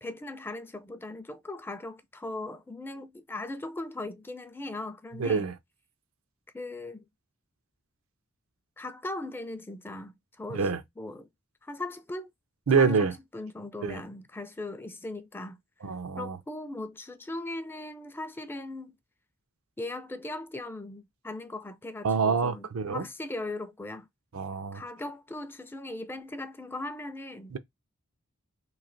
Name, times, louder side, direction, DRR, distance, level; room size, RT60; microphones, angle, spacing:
voice 1, 0.0-5.5 6.5-7.1 8.8-10.7 11.0-11.3 11.6-12.3 12.7-15.6 16.2-19.0 19.8-24.1 24.7-27.5, left 2 dB, 10° left, 0.4 m, -39 dB
voice 2, 5.2-5.5 10.5-10.8 12.7-13.1 13.8-14.0 15.8-16.4 22.0-23.1 24.3-24.8 27.5-27.6, right 5 dB, 75° right, 0.6 m, -26 dB
3.2 x 2.7 x 3.8 m
head